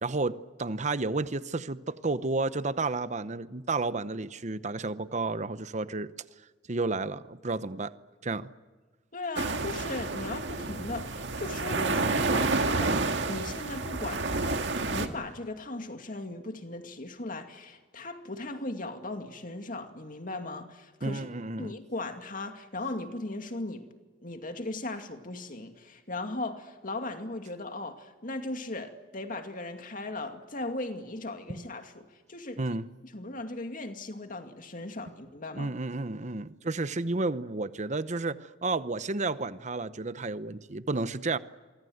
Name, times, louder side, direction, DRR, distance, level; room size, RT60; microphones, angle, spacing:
voice 1, 0.0-6.1 6.7-7.9 8.2-8.5 21.0-21.7 32.6-32.8 35.5-41.4, right 3 dB, 40° right, 0.9 m, -31 dB
voice 2, 9.1-21.3 21.6-23.9 24.2-32.8 33.1-35.7, left 2 dB, 50° left, 2.3 m, -38 dB
sound 1, 9.4-15.1, right 3 dB, 80° right, 1.9 m, -29 dB
27.0 x 24.0 x 8.0 m
head